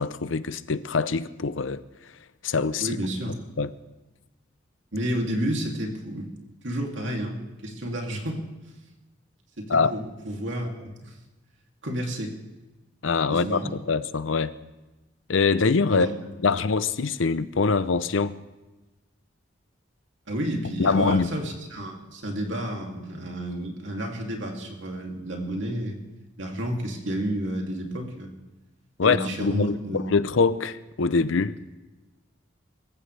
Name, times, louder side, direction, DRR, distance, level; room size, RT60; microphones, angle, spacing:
voice 1, 0.0-1.8 2.4-2.9 3.6-3.7 9.7-9.9 13.0-14.5 15.3-16.1 16.4-18.4 20.8-21.3 29.0-31.5, left 4 dB, 85° left, 0.6 m, -24 dB
voice 2, 2.8-3.3 4.9-6.3 6.6-8.4 9.6-11.1 11.8-12.3 13.3-13.7 15.9-16.1 16.5-16.6 20.3-26.0 26.4-28.3 29.0-30.1, right 1 dB, 70° right, 2.7 m, -31 dB
24.5 x 14.5 x 3.3 m
head